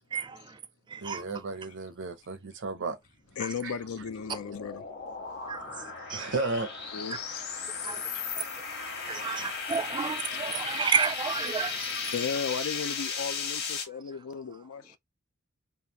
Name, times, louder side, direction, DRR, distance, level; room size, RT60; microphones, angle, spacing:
voice 1, 0.1-0.6 0.9-1.2 3.4-3.5 5.5-6.3 7.1-7.2 7.8-8.0 8.3-8.4 9.1-12.1, right 6 dB, 20° right, 0.3 m, -32 dB
voice 2, 1.0-3.0 3.6-3.7 6.1-6.7, right 3 dB, 55° right, 0.6 m, -33 dB
sound 1, 3.3-13.9, left 5 dB, 50° left, 1.2 m, -36 dB
voice 3, 3.4-4.8 6.9-7.4 8.1-8.3 10.3-10.4 10.7-10.8 12.1-15.0, left 6 dB, 85° left, 0.5 m, -35 dB
3.5 x 2.4 x 2.8 m
head